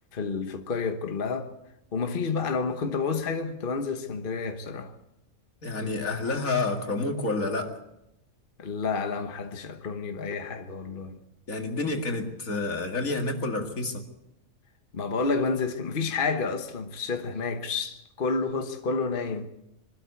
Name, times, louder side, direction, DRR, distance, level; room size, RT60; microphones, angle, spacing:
voice 1, 0.1-1.5 1.9-4.9 8.6-11.2 14.9-19.5, left 4 dB, 40° left, 1.3 m, -30 dB
voice 2, 5.6-7.7 11.5-14.0, left 3 dB, 70° left, 2.6 m, -29 dB
24.0 x 13.0 x 8.3 m
omnidirectional pair, 1.5 m